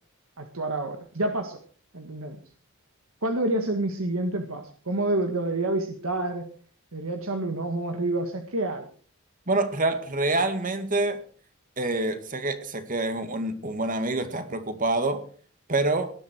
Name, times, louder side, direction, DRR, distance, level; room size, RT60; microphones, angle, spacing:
voice 1, 0.4-1.6 1.9-2.4 3.2-6.5 6.9-8.9, right 2 dB, 75° right, 5 dB, 1.8 m, -28 dB
voice 2, 9.5-11.2 11.8-15.2 15.7-16.1, right 2 dB, 40° right, 9 dB, 2.1 m, -26 dB
18.5 x 11.0 x 4.7 m, 0.43 s
head